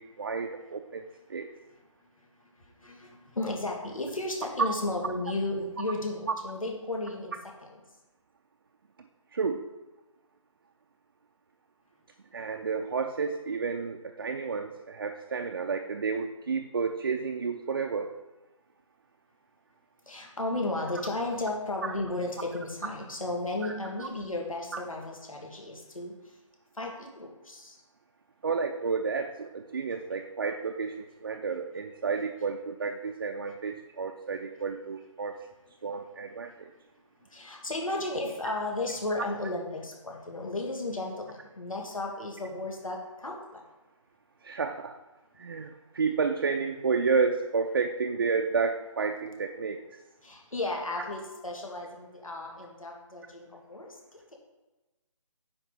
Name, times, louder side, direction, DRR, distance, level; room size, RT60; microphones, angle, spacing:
voice 1, 0.0-1.5 9.3-9.7 12.3-18.1 21.8-21.9 23.6-23.7 24.0-24.1 28.4-36.7 44.4-45.0 45.4-49.8, right 5 dB, 40° right, 4 dB, 0.6 m, -31 dB
voice 2, 2.6-7.3 20.1-26.1 26.7-27.8 37.3-43.6 50.2-54.0, left 2 dB, 80° left, 0 dB, 2.6 m, -34 dB
9.7 x 4.4 x 5.6 m, 1.1 s
figure-of-eight pair, 155°, 17 cm